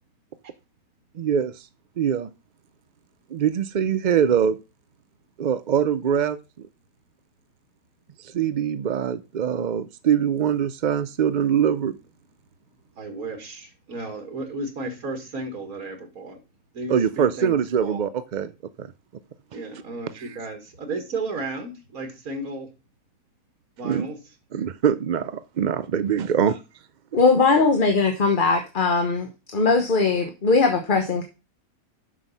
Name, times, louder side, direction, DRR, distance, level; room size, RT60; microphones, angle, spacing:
voice 1, 1.1-1.7 2.0-2.3 3.3-4.6 5.4-6.4 8.2-12.0 16.9-18.5 18.8-18.9 20.1-20.4 23.8-24.1 24.5-26.6, right 8 dB, 65° right, 14 dB, 0.4 m, -23 dB
voice 2, 13.0-16.4 16.7-18.0 19.5-22.7 23.8-24.2 27.6-27.7, right 2 dB, 90° right, 6 dB, 2.3 m, -33 dB
voice 3, 27.1-31.2, left 4 dB, 40° left, 4 dB, 1.2 m, -20 dB
7.6 x 6.2 x 5.3 m, 0.29 s
omnidirectional pair, 1.5 m